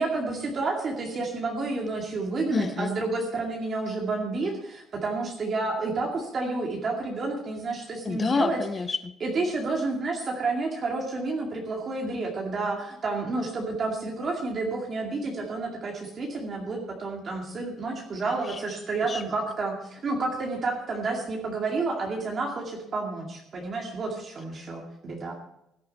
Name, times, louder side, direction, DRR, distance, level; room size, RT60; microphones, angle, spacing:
voice 1, 0.0-8.6 9.2-25.3, right 3 dB, 35° right, -1 dB, 2.3 m, -30 dB
voice 2, 2.5-2.9 8.0-9.1 18.5-18.6 19.0-19.2, left 4 dB, 25° left, 12 dB, 0.8 m, -28 dB
17.0 x 11.0 x 4.2 m, 0.82 s
cardioid pair, 135°, 0 cm